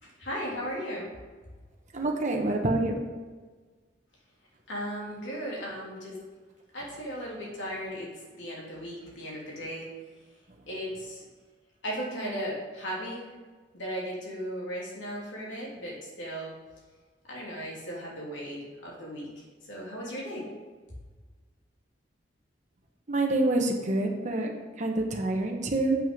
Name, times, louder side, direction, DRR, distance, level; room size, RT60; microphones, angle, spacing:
voice 1, 0.0-1.1 4.7-6.2 6.7-9.9 10.7-11.2 11.8-13.3 13.7-16.5 17.3-20.4, equal, 85° left, -4 dB, 2.9 m, -36 dB
voice 2, 1.9-3.0 23.1-26.0, right 2 dB, 40° right, 1 dB, 1.0 m, -27 dB
7.5 x 6.2 x 5.3 m, 1.4 s
head